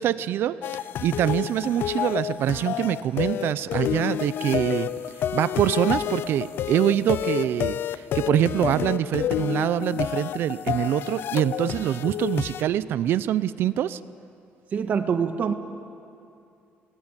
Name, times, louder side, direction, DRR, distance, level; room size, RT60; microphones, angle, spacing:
voice 1, 0.0-4.9 5.3-14.0, right 11 dB, 60° right, 15 dB, 0.7 m, -25 dB
sound 1, 0.6-12.6, left 11 dB, 55° left, 0.6 m, -29 dB
voice 2, 14.7-15.5, right 6 dB, 40° right, 7 dB, 1.6 m, -24 dB
29.0 x 20.5 x 9.1 m, 2.5 s
cardioid pair, 165°, 4 cm